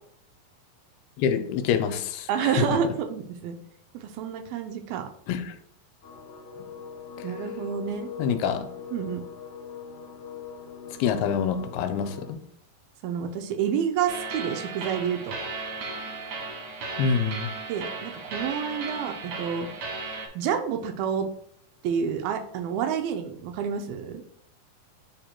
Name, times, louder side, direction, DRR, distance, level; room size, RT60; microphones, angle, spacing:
voice 1, 1.2-2.8 5.3-5.6 8.2-8.7 11.0-12.4 17.0-17.5, left 7 dB, 85° left, 8 dB, 2.5 m, -26 dB
voice 2, 2.3-3.6 3.9-5.1 7.2-8.4 8.9-9.2 13.0-15.4 17.7-19.7 20.4-21.3 21.8-24.2, right 7 dB, 85° right, 6 dB, 2.4 m, -29 dB
sound 1, 6.0-12.3, left 6 dB, 65° left, 2.6 m, -41 dB
sound 2, 14.1-20.3, right 3 dB, 65° right, 2.1 m, -35 dB
10.0 x 4.4 x 2.2 m, 0.69 s
omnidirectional pair, 4.3 m